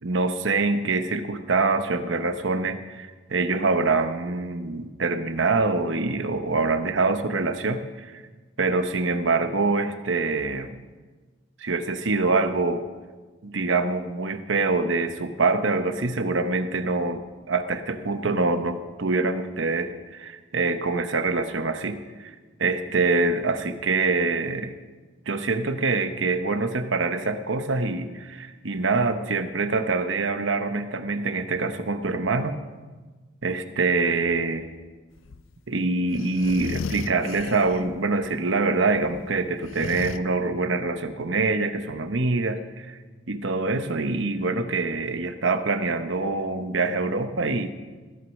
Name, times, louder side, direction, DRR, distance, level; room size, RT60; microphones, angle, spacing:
voice 1, 0.0-8.2 8.6-10.7 11.6-12.8 13.4-17.2 17.5-22.3 22.6-24.7 25.3-32.6 33.4-34.7 35.7-43.0 43.3-47.7, right 3 dB, 70° right, 9 dB, 0.9 m, -25 dB
sound 1, 35.2-35.5 36.1-38.0 38.2-38.3 38.9-40.2, left 4 dB, 80° left, 0.5 m, -35 dB
15.0 x 7.9 x 6.4 m, 1.3 s
head